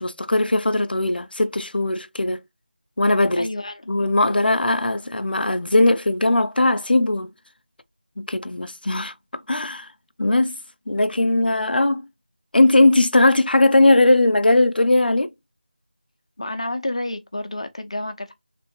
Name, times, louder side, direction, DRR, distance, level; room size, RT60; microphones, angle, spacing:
voice 1, 0.0-2.4 3.0-3.5 3.9-7.3 8.2-9.1 9.5-9.9 10.2-10.6 10.9-12.1 12.5-15.3, left 2 dB, 90° left, 0.6 m, -19 dB
voice 2, 3.4-4.0 4.4-4.6 16.4-18.3, left 1 dB, 40° left, 0.7 m, -30 dB
3.4 x 3.0 x 4.5 m
figure-of-eight pair, 175°, 5 cm